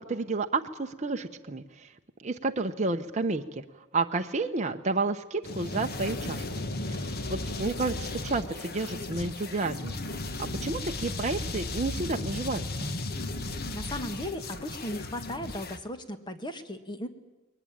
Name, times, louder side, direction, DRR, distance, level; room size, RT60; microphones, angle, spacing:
voice 1, 0.0-1.9 2.2-3.6 3.9-6.4 6.9-10.0 10.4-12.6, right 3 dB, 35° right, 4 dB, 0.9 m, -31 dB
sound 1, 5.4-15.8, left 2 dB, 45° left, 1.4 m, -35 dB
voice 2, 13.4-17.1, left 1 dB, 20° left, 9 dB, 1.6 m, -37 dB
21.5 x 20.0 x 8.9 m, 1.1 s
head